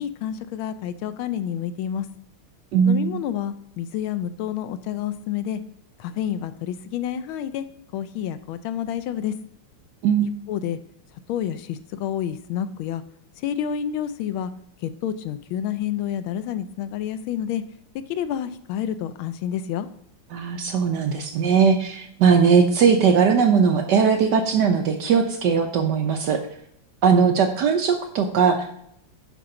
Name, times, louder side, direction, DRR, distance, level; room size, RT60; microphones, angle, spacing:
voice 1, 0.0-2.1 2.8-5.6 6.0-7.7 7.9-9.3 10.5-10.8 11.3-13.0 13.4-14.5 14.8-17.6 18.1-19.9, left 10 dB, 80° left, 12 dB, 1.3 m, -29 dB
voice 2, 2.7-3.2 10.0-10.3 20.3-26.4 27.0-28.7, right 6 dB, 70° right, 6 dB, 1.1 m, -19 dB
10.0 x 5.2 x 3.8 m, 0.72 s
omnidirectional pair, 2.4 m